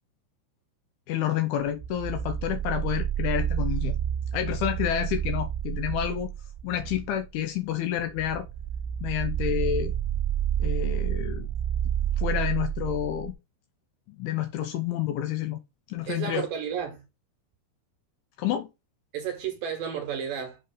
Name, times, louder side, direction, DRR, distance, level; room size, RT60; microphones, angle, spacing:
voice 1, 1.1-4.0 4.3-6.3 6.6-8.5 9.0-9.9 10.6-11.5 12.2-13.3 14.1-15.6 15.9-16.5 18.4-18.7, left 11 dB, 80° left, 2.3 m, -29 dB
sound 1, 1.6-7.2 8.0-13.3, right 10 dB, 85° right, 2.7 m, -29 dB
voice 2, 16.0-17.0 19.1-20.6, right 8 dB, 65° right, 2.4 m, -32 dB
7.6 x 3.2 x 5.3 m
omnidirectional pair, 5.0 m